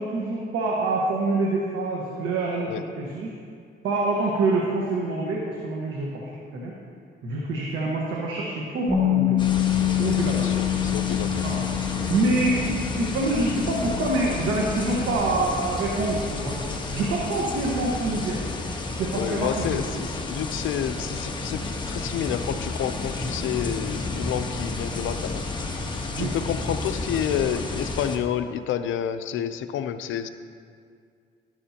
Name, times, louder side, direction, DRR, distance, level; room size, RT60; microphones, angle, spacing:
voice 1, 0.0-3.3 3.8-6.7 7.2-9.4 9.8-10.5 11.3-11.6 12.1-18.4 18.8-20.0 26.2-26.3, right 2 dB, 85° right, -3 dB, 1.4 m, -26 dB
Bass guitar, 8.9-15.1, left 13 dB, ahead, 2.2 m, -26 dB
sound 1, 9.4-28.2, left 2 dB, 25° left, 1.3 m, -31 dB
voice 2, 10.3-11.5 19.1-25.4 26.2-30.3, left 9 dB, 80° left, 10 dB, 0.6 m, -29 dB
12.0 x 12.0 x 2.9 m, 2.2 s
cardioid pair, 90°, 20 cm